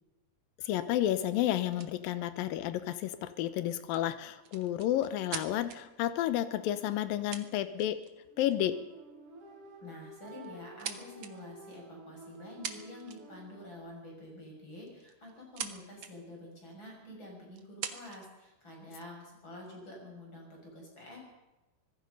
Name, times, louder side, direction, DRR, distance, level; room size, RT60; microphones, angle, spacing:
voice 1, 0.6-8.0 8.4-8.8, left 12 dB, 75° left, 11 dB, 2.2 m, -31 dB
sound 1, 1.7-1.9 3.9-5.8 6.9-7.0 7.3-8.1 8.5-8.7 9.7-9.9 10.3-11.3 12.3-12.4 12.6-13.4 14.9-15.7 16.0-16.1 16.8-16.9 17.6-18.3 19.0-19.7, right 8 dB, 75° right, 1.5 m, -42 dB
sound 2, 6.5-13.8, right 2 dB, 45° right, 5.6 m, -52 dB
voice 2, 9.8-21.2, left 1 dB, 25° left, 0 dB, 7.3 m, -48 dB
25.0 x 19.5 x 5.5 m, 1.0 s
omnidirectional pair, 5.1 m